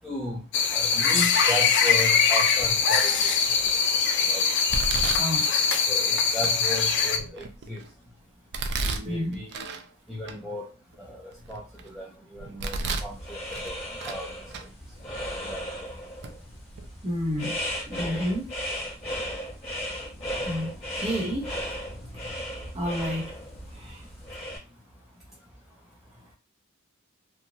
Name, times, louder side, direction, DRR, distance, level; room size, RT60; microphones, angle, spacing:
voice 1, 0.0-0.4 0.7-3.3 4.3-4.4 5.9-7.8 8.8-9.7 10.1-10.7 11.0-12.1 12.3-13.4 13.6-13.7 14.1-14.3 15.5-15.6, left 1 dB, ahead, 0.5 m, -35 dB
sound 1, 0.5-7.2, left 5 dB, 55° left, 0.4 m, -22 dB
Domestic sounds home sounds, 2.6-3.0 3.5-4.0 4.7-5.9 6.4-6.5 7.1-7.9 8.5-9.9 10.2-10.4 10.9-11.9 12.4-13.1 13.5-14.2 14.5-14.7 15.5-15.6 16.2-16.3 16.7-16.9, right 3 dB, 50° right, 0.4 m, -33 dB
voice 2, 5.2-5.5 9.0-9.4 17.0-17.6 17.9-18.5 20.4-21.5 22.7-23.3 23.8-24.0, equal, 25° right, 1.1 m, -30 dB
sound 2, 13.1-24.6, equal, 25° left, 1.3 m, -36 dB
2.9 x 2.3 x 2.6 m
head